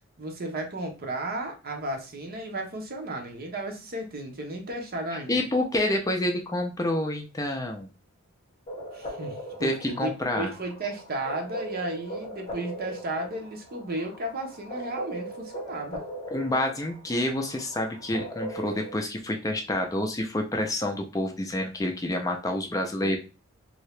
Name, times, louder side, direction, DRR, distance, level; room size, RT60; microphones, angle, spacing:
voice 1, 0.2-5.4 8.9-16.0 23.0-23.2, right 1 dB, 50° right, 2 dB, 0.8 m, -34 dB
voice 2, 5.3-7.9 9.6-10.5 16.3-23.2, left 1 dB, 15° left, 3 dB, 0.4 m, -28 dB
sound 1, 8.7-19.0, right 1 dB, 35° left, 1.0 m, -40 dB
2.8 x 2.7 x 3.2 m, 0.31 s
head